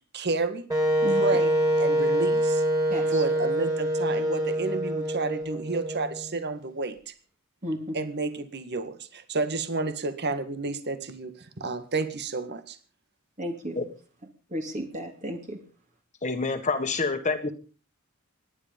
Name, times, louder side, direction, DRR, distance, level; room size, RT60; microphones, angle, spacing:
voice 1, 0.1-0.6 1.2-2.6 3.1-7.1 7.9-12.8, right 3 dB, 50° right, 10 dB, 1.8 m, -31 dB
Wind instrument woodwind instrument, 0.7-6.5, right 1 dB, 15° right, 3.9 m, -25 dB
voice 2, 1.0-1.4 2.9-3.2 7.6-8.0 13.4-13.9 14.5-15.6, equal, 35° right, 3 dB, 2.7 m, -34 dB
voice 3, 16.2-17.5, left 4 dB, 35° left, 6 dB, 1.6 m, -27 dB
25.0 x 10.5 x 5.3 m, 0.39 s
head